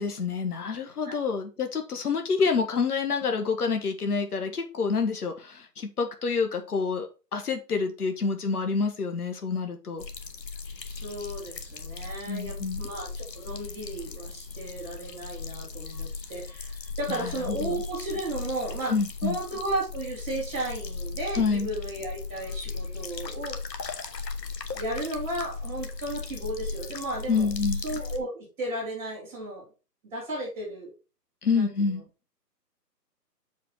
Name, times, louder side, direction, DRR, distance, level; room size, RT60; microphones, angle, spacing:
voice 1, 0.0-10.1 12.3-12.8 17.1-17.8 18.9-19.4 21.4-21.7 27.3-27.8 31.4-32.0, left 5 dB, 65° left, 5 dB, 1.6 m, -28 dB
sound 1, 10.0-28.2, left 4 dB, 85° left, 1.4 m, -37 dB
voice 2, 10.9-18.9 19.2-23.6 24.7-27.5 27.8-29.7 30.0-30.9 31.5-31.7, right 1 dB, 5° right, -7 dB, 2.1 m, -34 dB
6.6 x 5.2 x 4.4 m, 0.31 s
hypercardioid pair, 175°, 49 cm